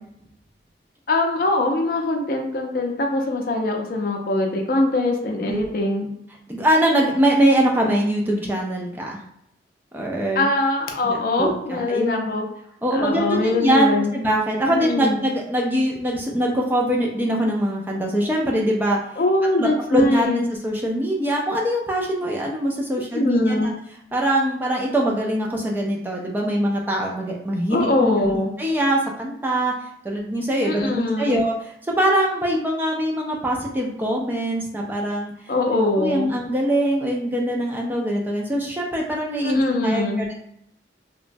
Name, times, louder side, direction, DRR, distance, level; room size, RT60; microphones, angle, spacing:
voice 1, 1.1-6.1 10.4-12.5 12.9-14.1 14.7-15.2 19.2-20.4 23.1-23.7 27.7-28.5 30.6-31.5 35.5-36.3 39.4-40.2, left 2 dB, 55° left, 2 dB, 0.5 m, -22 dB
voice 2, 6.5-9.2 9.9-10.5 11.0-12.3 12.8-19.0 19.6-23.7 24.1-29.7 30.0-35.3 35.9-40.3, right 1 dB, 10° right, -1 dB, 0.3 m, -23 dB
2.9 x 2.2 x 2.5 m, 0.75 s
head